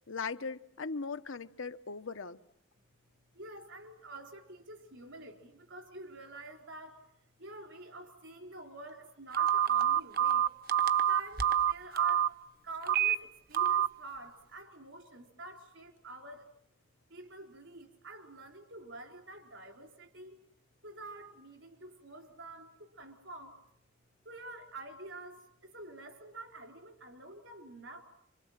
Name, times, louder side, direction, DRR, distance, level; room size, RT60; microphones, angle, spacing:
voice 1, 0.0-2.4, left 4 dB, 80° left, 1.0 m, -39 dB
voice 2, 3.3-7.0 7.4-10.5 11.0-12.3 12.6-16.5 17.1-20.4 20.8-23.6 24.2-28.0, right 2 dB, 75° right, 4.2 m, -48 dB
Telephone, 9.3-12.3 12.8-13.1 13.5-13.9, right 9 dB, 45° right, 1.0 m, -26 dB
27.5 x 26.0 x 7.4 m
head